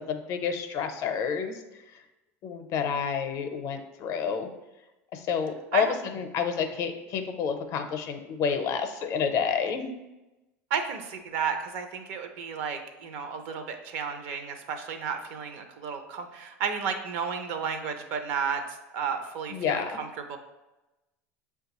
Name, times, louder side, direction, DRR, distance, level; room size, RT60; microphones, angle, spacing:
voice 1, 0.0-1.5 2.4-4.5 5.1-9.9 19.5-19.9, left 7 dB, 50° left, 7 dB, 0.5 m, -29 dB
voice 2, 10.7-20.4, right 6 dB, 70° right, 6 dB, 0.6 m, -33 dB
6.4 x 2.3 x 2.9 m, 1.0 s
hypercardioid pair, 95°, 7 cm